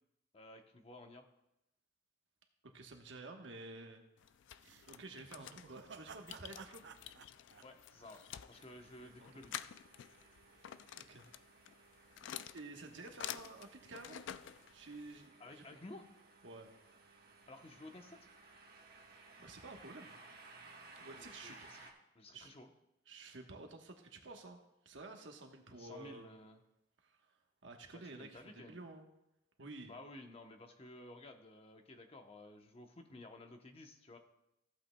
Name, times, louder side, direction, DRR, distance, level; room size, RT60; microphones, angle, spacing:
voice 1, 0.3-1.3 7.6-9.5 15.4-16.1 17.5-18.3 21.1-21.9 22.1-22.7 25.8-26.6 27.9-28.8 29.8-34.2, left 2 dB, 30° left, 5 dB, 0.8 m, -54 dB
voice 2, 2.7-4.0 4.9-6.8 9.0-9.4 10.9-11.2 12.5-14.2 14.7-15.6 16.4-16.7 19.4-20.1 20.9-21.9 22.3-22.5 23.1-24.6 24.8-26.3 27.0-27.3 27.6-29.0 29.6-29.9, right 2 dB, 90° right, 3 dB, 1.2 m, -51 dB
sound 1, 4.2-15.3, left 10 dB, 80° left, 0.3 m, -50 dB
sound 2, 4.6-8.7, right 5 dB, 70° right, 0.6 m, -56 dB
sound 3, 8.5-21.9, right 3 dB, 55° right, 1.3 m, -60 dB
15.0 x 8.3 x 2.2 m, 0.86 s
head